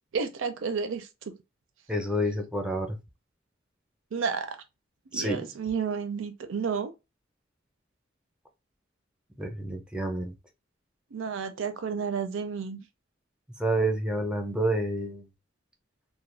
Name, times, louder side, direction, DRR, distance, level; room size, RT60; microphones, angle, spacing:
voice 1, 0.1-1.4 4.1-4.6 5.1-6.9 11.1-12.8, right 6 dB, 80° right, 0.5 m, -31 dB
voice 2, 1.9-3.0 5.1-5.5 9.4-10.3 13.6-15.3, right 1 dB, 5° right, 0.5 m, -29 dB
2.3 x 2.1 x 3.1 m
head